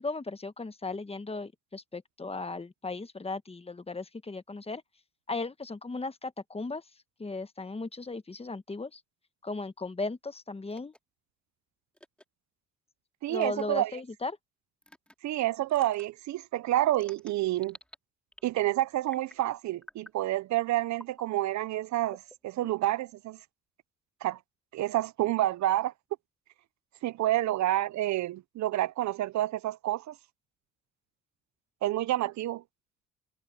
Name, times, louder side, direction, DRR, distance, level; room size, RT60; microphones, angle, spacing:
voice 1, 0.0-4.8 5.3-6.8 7.2-9.0 9.4-10.9 13.3-14.3, left 3 dB, 20° left, 1.2 m, -36 dB
sound 1, 10.7-11.0 11.9-12.2 13.3-13.6 14.8-15.1 15.7-16.1 16.9-18.0 18.3-18.7 19.1-19.4 19.8-20.2 20.9-21.3 22.1-23.0, left 1 dB, 5° left, 2.2 m, -51 dB
voice 2, 13.2-13.9 15.2-17.8 18.4-23.4 24.2-24.4 24.7-25.9 27.0-30.1 31.8-32.6, right 14 dB, 70° right, 0.6 m, -29 dB
cardioid pair, 90°, 30 cm